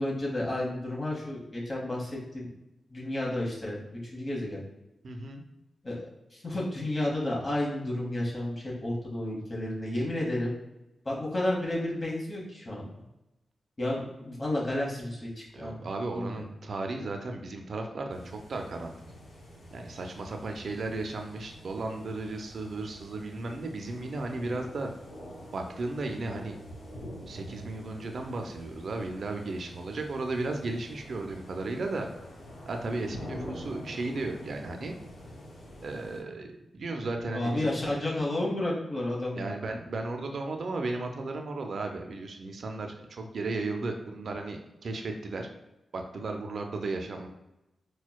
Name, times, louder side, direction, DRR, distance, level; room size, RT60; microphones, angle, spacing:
voice 1, 0.0-2.5 2.9-4.6 5.8-10.5 11.0-12.9 13.8-15.8 16.1-16.4 37.3-39.5, left 1 dB, 35° left, -4 dB, 1.1 m, -31 dB
voice 2, 5.0-5.4 15.5-18.9 19.7-24.9 25.5-26.6 27.3-32.1 32.6-35.0 35.8-37.7 39.4-45.5 45.9-47.3, right 2 dB, 65° right, 3 dB, 0.4 m, -35 dB
sound 1, 18.1-36.2, equal, 90° left, 0.9 m, -46 dB
4.3 x 2.2 x 2.2 m, 0.95 s
cardioid pair, 65°, 0 cm